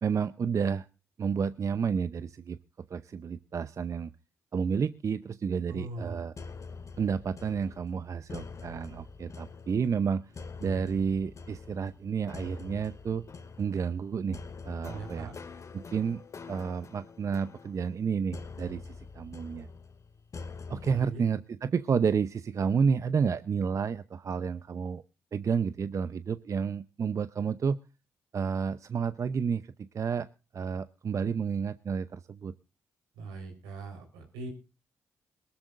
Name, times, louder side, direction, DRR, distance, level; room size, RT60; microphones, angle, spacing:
voice 1, 0.0-0.9 1.2-2.6 2.9-4.1 4.5-6.3 7.0-10.3 10.6-13.2 13.6-15.3 15.7-16.2 16.5-19.7 20.7-25.0 25.3-27.8 28.3-30.3 30.5-32.5, right 6 dB, 50° right, 13 dB, 0.7 m, -30 dB
voice 2, 5.7-6.2 14.9-15.4 20.8-21.2 33.1-34.5, right 3 dB, 90° right, 4 dB, 4.2 m, -41 dB
sound 1, 6.4-21.1, left 4 dB, 50° left, 2.2 m, -45 dB
22.5 x 13.0 x 2.6 m, 0.32 s
supercardioid pair, 50°, 7 cm